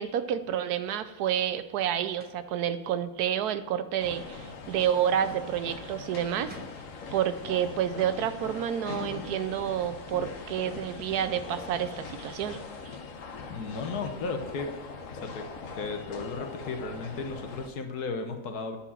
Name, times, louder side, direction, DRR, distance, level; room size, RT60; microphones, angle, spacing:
voice 1, 0.0-6.5 7.1-12.6, right 9 dB, 75° right, 12 dB, 1.1 m, -29 dB
sound 1, 2.2-2.5 6.1-6.2 6.5-6.8, right 1 dB, 10° right, 0.7 m, -49 dB
sound 2, 4.0-17.7, left 4 dB, 60° left, 1.2 m, -41 dB
voice 2, 13.5-14.7 15.2-15.5 15.8-18.8, left 4 dB, 75° left, 5 dB, 1.5 m, -34 dB
9.7 x 4.3 x 7.2 m, 1.1 s
omnidirectional pair, 1.7 m